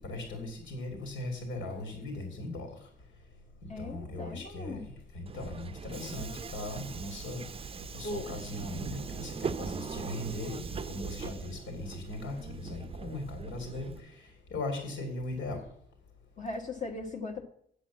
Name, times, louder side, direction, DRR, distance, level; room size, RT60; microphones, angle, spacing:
voice 1, 0.0-2.7 3.8-4.8 5.1-7.4 7.9-14.1 14.5-15.6, left 2 dB, 80° left, 3 dB, 2.8 m, -38 dB
voice 2, 3.7-4.9 8.0-8.3 16.4-17.4, left 2 dB, 40° left, 0 dB, 1.4 m, -38 dB
Subway metro underground, 5.3-14.0, right 6 dB, 30° right, 0.5 m, -41 dB
8.3 x 8.0 x 7.3 m, 0.67 s
cardioid pair, 90°, 20 cm